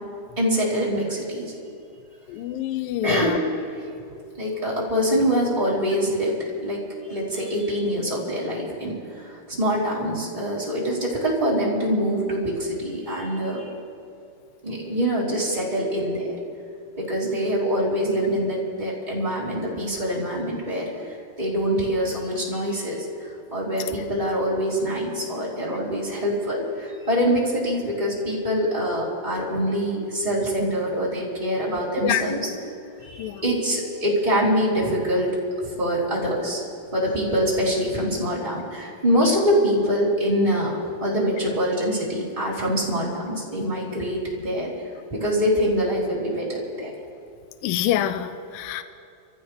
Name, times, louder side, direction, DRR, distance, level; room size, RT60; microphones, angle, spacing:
voice 1, 0.4-1.5 3.0-3.8 4.1-13.7 14.6-16.4 17.0-32.5 33.0-35.4 35.6-36.6 36.9-44.7 45.1-46.9, equal, 10° right, -7 dB, 3.1 m, -25 dB
voice 2, 2.3-3.4 32.0-32.2 33.2-33.4 39.1-39.4 47.6-48.8, left 12 dB, 80° left, 10 dB, 2.1 m, -26 dB
28.5 x 15.0 x 3.4 m, 2.4 s
omnidirectional pair, 4.6 m